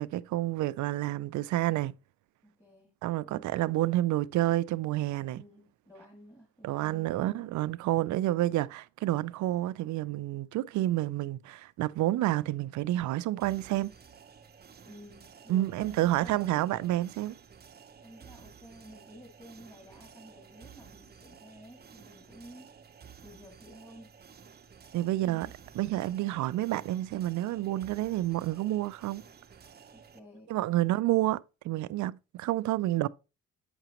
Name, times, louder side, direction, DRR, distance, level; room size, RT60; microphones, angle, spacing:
voice 1, 0.0-1.9 3.0-5.4 6.6-13.9 15.5-17.4 24.9-25.5 25.8-29.2 30.5-33.1, right 15 dB, 75° right, 0.5 m, -29 dB
voice 2, 2.4-2.9 3.2-3.5 5.3-7.5 8.0-8.4 14.9-16.9 18.0-22.7 23.2-24.1 25.2-25.5 29.9-30.8 33.0-33.1, equal, 10° left, 2.1 m, -52 dB
sound 1, 13.4-30.2, right 6 dB, 35° right, 0.7 m, -53 dB
7.9 x 5.8 x 2.9 m
cardioid pair, 90°, 30 cm